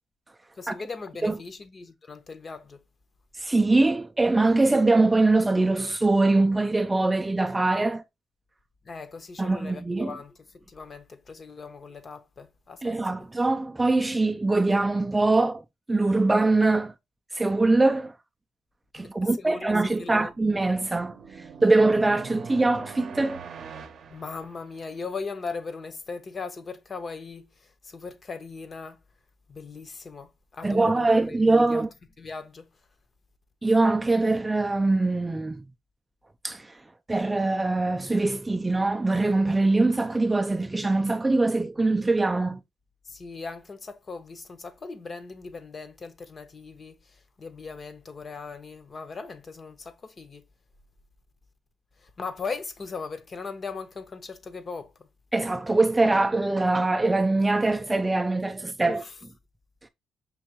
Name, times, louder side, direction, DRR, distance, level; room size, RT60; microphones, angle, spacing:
voice 1, 0.6-2.8 8.8-13.0 19.0-20.3 24.1-29.0 29.5-31.9 32.2-32.7 43.1-47.0 47.4-50.4 52.0-55.1 58.9-59.1, left 4 dB, 40° left, 0.9 m, -38 dB
voice 2, 3.4-8.0 9.4-10.2 12.8-15.6 15.9-16.9 17.3-18.1 18.9-21.2 21.6-23.4 30.6-31.9 33.6-35.6 36.4-36.7 37.1-42.6 55.3-59.0, right 2 dB, 15° right, 0.4 m, -23 dB
sound 1, 20.1-25.1, right 6 dB, 60° right, 0.7 m, -43 dB
5.3 x 2.9 x 2.9 m
cardioid pair, 90°, 0 cm